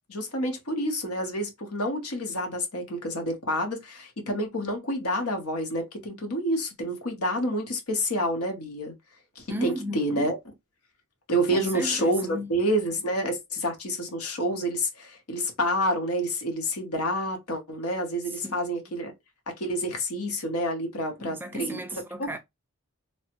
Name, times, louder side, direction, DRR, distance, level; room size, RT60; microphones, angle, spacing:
voice 1, 0.1-8.9 9.4-10.4 11.3-19.1 19.5-21.8 22.2-22.3, equal, 85° left, 1.0 m, -28 dB
voice 2, 9.5-10.3 11.5-12.5 18.3-18.8 21.2-22.4, right 1 dB, 10° right, 0.3 m, -35 dB
3.1 x 2.1 x 2.9 m
head